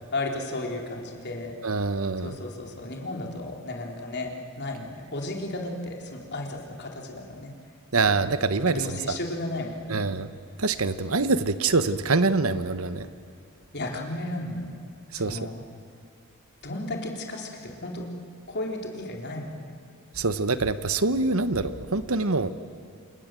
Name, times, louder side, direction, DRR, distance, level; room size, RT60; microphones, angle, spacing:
voice 1, 0.1-1.5 2.2-4.3 4.6-7.5 8.0-8.1 8.6-10.0 13.7-14.8 15.2-15.6 16.6-18.1 18.5-19.7, left 2 dB, 50° left, 1 dB, 3.9 m, -34 dB
voice 2, 1.6-2.3 7.9-9.2 9.9-10.3 10.6-13.1 15.1-15.4 20.1-22.5, right 3 dB, 75° right, 12 dB, 1.2 m, -25 dB
28.0 x 27.5 x 7.7 m, 2.5 s
head